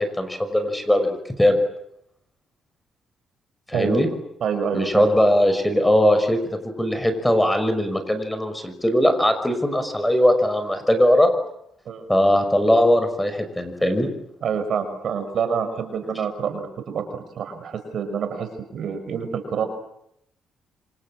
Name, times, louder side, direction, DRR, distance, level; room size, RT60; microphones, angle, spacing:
voice 1, 0.0-1.6 3.7-4.1 4.7-6.4 6.8-11.3 12.1-14.1, left 1 dB, 5° left, 9 dB, 5.9 m, -20 dB
voice 2, 3.7-4.0 4.4-5.1 11.9-12.0 14.4-19.7, right 6 dB, 60° right, 8 dB, 5.7 m, -27 dB
28.0 x 26.0 x 7.6 m, 0.77 s
cardioid pair, 90°, 0 cm